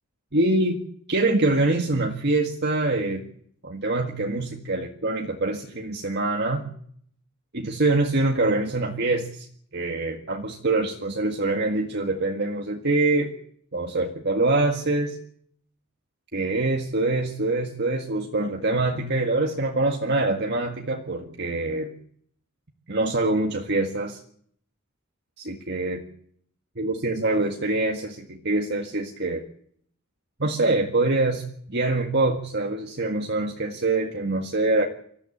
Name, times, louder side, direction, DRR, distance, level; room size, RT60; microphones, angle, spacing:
voice 1, 0.3-0.8 1.1-3.2 3.6-6.6 7.5-9.5 9.7-13.3 13.7-15.2 16.3-22.0 22.9-24.2 25.4-26.0 26.8-29.4 30.4-31.4 31.7-34.9, right 2 dB, 50° right, 3 dB, 1.9 m, -24 dB
24.5 x 14.5 x 8.6 m, 0.65 s
head